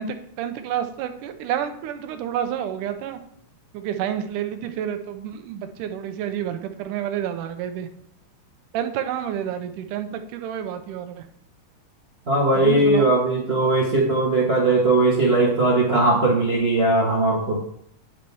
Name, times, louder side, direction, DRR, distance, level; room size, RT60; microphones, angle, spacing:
voice 1, 0.0-3.2 3.7-7.9 8.7-11.3 12.6-13.1, right 9 dB, 85° right, 7 dB, 2.4 m, -29 dB
voice 2, 12.3-17.6, right 2 dB, 60° right, -2 dB, 0.6 m, -19 dB
9.6 x 6.2 x 4.6 m, 0.69 s
omnidirectional pair, 3.7 m